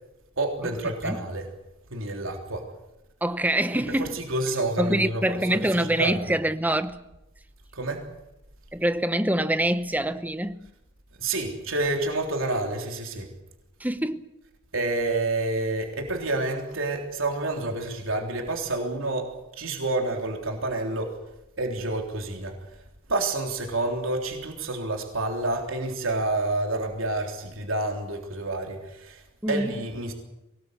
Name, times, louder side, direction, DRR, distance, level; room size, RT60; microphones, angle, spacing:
voice 1, 0.4-1.5 1.9-2.7 3.9-6.2 7.7-8.1 11.2-13.3 14.7-21.2 21.6-22.5 23.1-30.1, right 2 dB, 75° right, 3.6 m, -29 dB
voice 2, 3.2-4.2 4.8-7.0 8.7-10.6 13.8-14.3 29.4-29.7, right 1 dB, 10° right, 0.9 m, -25 dB
23.5 x 19.5 x 8.2 m
head